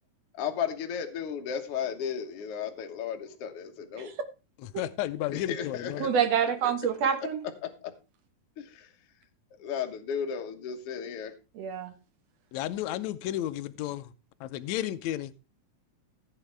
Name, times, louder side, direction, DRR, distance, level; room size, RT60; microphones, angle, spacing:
voice 1, 0.3-4.1 5.3-6.7 7.4-7.9 8.6-8.9 9.6-11.3, left 7 dB, 60° left, 1.7 m, -35 dB
voice 2, 4.6-6.1 12.5-14.1 14.4-15.3, left 13 dB, 80° left, 1.6 m, -33 dB
voice 3, 6.0-7.4 11.6-11.9, right 8 dB, 60° right, 1.9 m, -26 dB
15.0 x 8.3 x 3.4 m
omnidirectional pair, 4.0 m